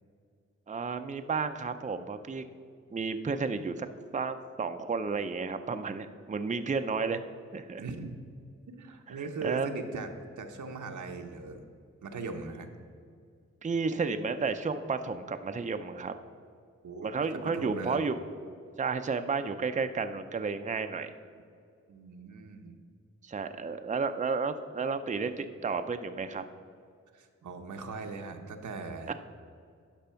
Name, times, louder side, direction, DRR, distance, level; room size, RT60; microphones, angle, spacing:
voice 1, 0.7-2.4 2.9-3.9 4.1-7.2 7.5-7.8 9.1-9.2 9.4-9.7 13.6-16.1 17.0-18.1 18.8-21.1 23.2-26.4 29.1-29.2, right 4 dB, 25° right, 8 dB, 0.5 m, -32 dB
voice 2, 7.8-8.2 8.7-10.1 10.4-11.6 12.0-12.7 16.8-18.0 21.9-22.7 27.1-29.1, right 4 dB, 90° right, 4 dB, 0.9 m, -39 dB
10.5 x 6.0 x 5.7 m, 2.3 s
wide cardioid pair, 70°, 29 cm